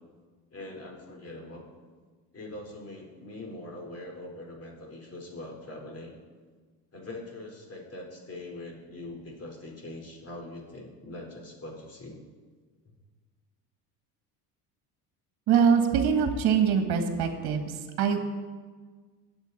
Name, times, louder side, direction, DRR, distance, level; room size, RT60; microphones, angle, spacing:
voice 1, 0.5-1.6 2.3-6.2 6.9-12.2, left 2 dB, 30° left, 0 dB, 4.3 m, -42 dB
voice 2, 15.5-18.2, right 7 dB, 55° right, 6 dB, 1.9 m, -23 dB
22.0 x 7.8 x 4.2 m, 1.5 s
hypercardioid pair, 70°, 46 cm